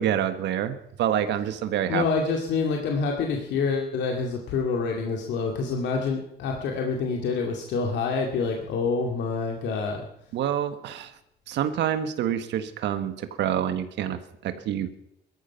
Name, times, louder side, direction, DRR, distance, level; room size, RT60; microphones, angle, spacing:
voice 1, 0.0-2.1 10.3-11.1 11.5-14.9, right 10 dB, 85° right, 10 dB, 1.4 m, -27 dB
voice 2, 1.9-10.0, left 4 dB, 85° left, 1 dB, 2.3 m, -27 dB
17.0 x 13.5 x 5.7 m, 0.76 s
cardioid pair, 100°, 18 cm